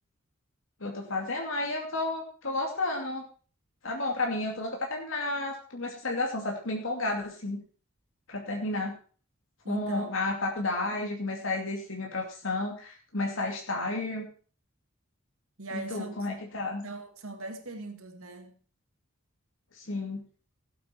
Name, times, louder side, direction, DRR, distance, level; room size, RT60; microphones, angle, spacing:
voice 1, 0.8-3.2 3.8-7.6 8.3-8.9 9.7-14.3 15.9-16.8 19.7-20.2, left 2 dB, 65° left, 1 dB, 2.5 m, -32 dB
voice 2, 9.6-10.2 15.6-16.1 16.8-18.6, right 3 dB, 80° right, 5 dB, 2.3 m, -40 dB
16.5 x 8.4 x 4.5 m, 0.41 s
head